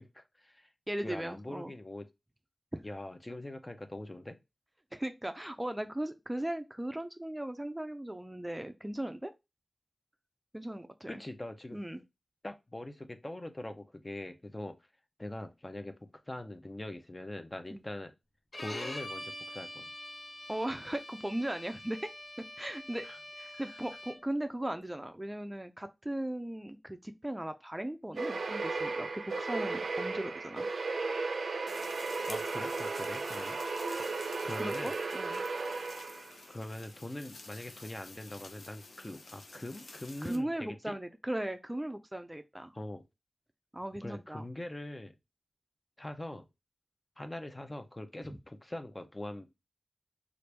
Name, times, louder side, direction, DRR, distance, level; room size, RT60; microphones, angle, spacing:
voice 1, 0.0-0.7 1.0-2.0 2.8-4.4 11.1-11.8 12.4-14.8 15.2-18.1 18.5-19.9 23.1-23.2 32.3-33.6 34.4-34.9 36.5-40.9 42.7-43.0 44.0-45.1 46.0-46.5 47.2-49.5, left 1 dB, 30° left, 0.6 m, -42 dB
voice 2, 0.9-1.7 2.7-2.8 4.9-9.3 10.5-11.2 11.7-12.0 17.7-17.8 20.5-22.1 22.4-23.1 23.4-30.7 33.9-34.1 34.5-35.4 40.2-42.7 43.7-44.5 48.3-48.4, right 1 dB, 15° right, 0.4 m, -38 dB
Bowed string instrument, 18.5-24.4, left 1 dB, 65° left, 0.9 m, -45 dB
sound 1, 28.2-36.4, right 3 dB, 90° right, 0.3 m, -35 dB
sound 2, 31.7-40.4, left 3 dB, 90° left, 0.6 m, -51 dB
3.0 x 2.5 x 3.3 m
cardioid pair, 45°, 0 cm